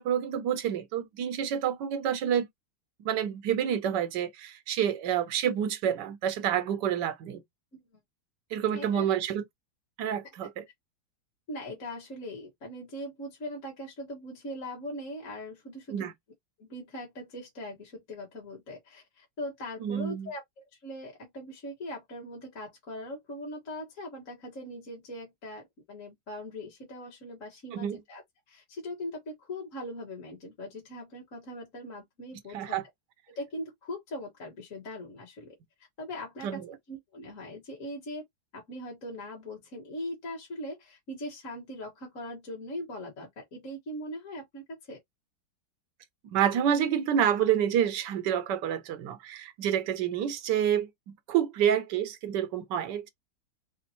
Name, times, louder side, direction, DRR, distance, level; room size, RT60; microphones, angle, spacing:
voice 1, 0.0-2.5 3.0-7.4 8.5-9.4 10.0-10.6 15.9-16.1 19.8-20.3 27.7-28.0 32.5-32.8 36.4-36.7 46.3-53.1, right 9 dB, 65° right, 1.4 m, -28 dB
voice 2, 8.7-9.1 11.5-16.1 16.6-28.2 28.5-32.8 33.3-35.5 36.0-36.5 36.9-38.2 38.5-45.0, left 1 dB, 40° left, 1.7 m, -40 dB
4.3 x 2.1 x 4.2 m
omnidirectional pair, 2.2 m